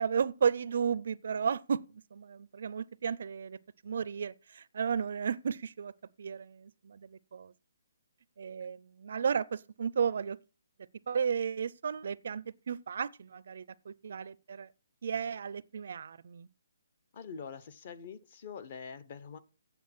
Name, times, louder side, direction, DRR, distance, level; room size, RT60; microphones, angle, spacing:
voice 1, 0.0-5.9 6.2-7.5 8.4-10.4 11.1-14.7 15.0-16.5, right 7 dB, 50° right, 0.4 m, -34 dB
voice 2, 17.1-19.4, left 6 dB, 35° left, 0.8 m, -44 dB
8.4 x 7.6 x 6.0 m
hypercardioid pair, 175°, 0 cm